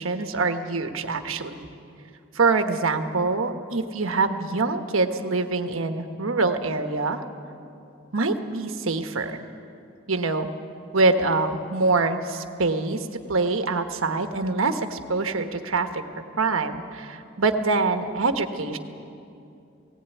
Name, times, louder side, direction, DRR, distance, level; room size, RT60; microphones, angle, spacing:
voice 1, 0.0-1.7 2.3-7.2 8.1-9.4 10.1-10.5 10.9-16.0 16.4-18.8, right 3 dB, 75° right, 7 dB, 1.3 m, -25 dB
18.0 x 17.5 x 9.2 m, 2.6 s
head